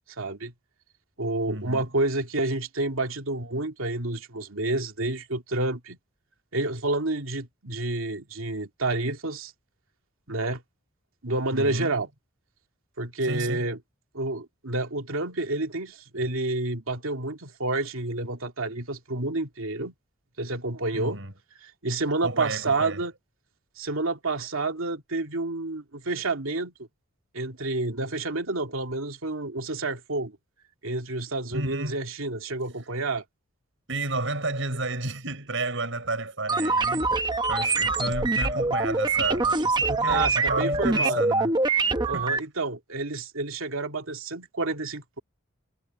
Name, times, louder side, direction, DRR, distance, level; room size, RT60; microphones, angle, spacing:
voice 1, 0.2-0.5 1.2-6.0 6.5-9.5 10.3-10.6 11.2-12.1 13.0-13.8 14.1-19.9 20.4-21.2 21.6-23.1 23.8-26.7 27.3-30.3 30.8-33.2 40.1-41.2 42.1-45.2, right 2 dB, 85° right, 2.6 m, -29 dB
voice 2, 1.5-1.9 11.5-12.0 13.2-13.7 20.9-21.3 22.2-23.1 31.5-32.1 33.9-37.1 37.5-41.5 42.1-42.3, right 2 dB, 70° right, 5.2 m, -32 dB
sound 1, 36.5-42.4, right 3 dB, 20° right, 1.0 m, -24 dB
head